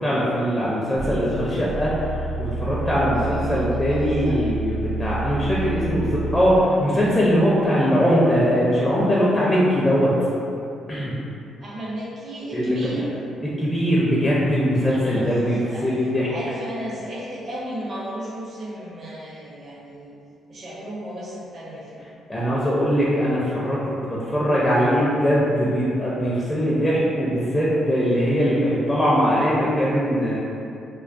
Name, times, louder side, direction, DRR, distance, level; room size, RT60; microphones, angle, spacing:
voice 1, 0.0-1.9 2.4-10.1 10.9-11.1 12.5-12.9 13.6-16.3 22.3-30.4, equal, 15° left, -7 dB, 0.4 m, -21 dB
sound 1, 1.0-6.6, right 3 dB, 80° right, 0.8 m, -29 dB
voice 2, 3.1-4.4 11.6-13.1 15.1-20.1 20.5-22.1, right 1 dB, 50° right, -7 dB, 0.6 m, -34 dB
2.3 x 2.2 x 2.5 m, 2.6 s
cardioid pair, 90°, 0 cm